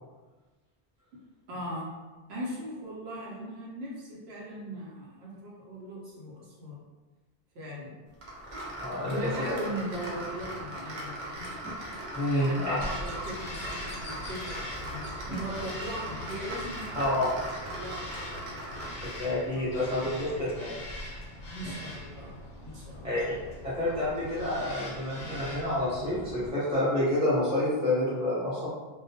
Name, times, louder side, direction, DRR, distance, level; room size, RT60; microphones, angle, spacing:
voice 1, 1.5-1.9 2.3-6.8 7.5-7.9 9.0-11.4 12.3-16.9 17.5-18.8 19.6-20.1 21.5-22.3 22.6-23.3, right 1 dB, 75° right, -5 dB, 0.9 m, -39 dB
sound 1, 8.2-19.3, right 1 dB, 55° right, 0.6 m, -39 dB
voice 2, 8.8-9.3 12.1-12.7 17.0-17.3 19.2-20.8 23.0-23.2 23.6-28.7, left 1 dB, 5° right, -10 dB, 0.6 m, -28 dB
Bird vocalization bird call bird song, 12.8-26.5, left 1 dB, 60° left, 0.6 m, -42 dB
2.2 x 2.2 x 2.7 m, 1.2 s
omnidirectional pair, 1.1 m